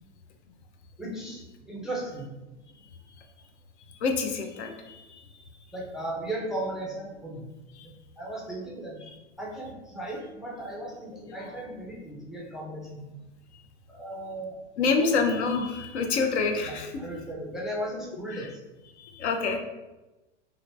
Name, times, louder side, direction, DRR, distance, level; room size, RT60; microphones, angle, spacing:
voice 1, 1.0-2.3 5.7-7.5 8.2-9.0 9.4-13.2 13.9-14.6 15.0-15.1 16.6-18.6, right 1 dB, ahead, -3 dB, 0.4 m, -36 dB
voice 2, 4.0-5.1 7.8-7.9 14.8-16.9 19.1-19.6, left 4 dB, 70° left, 4 dB, 0.7 m, -26 dB
2.8 x 2.6 x 3.2 m, 1.1 s
hypercardioid pair, 100°, 35 cm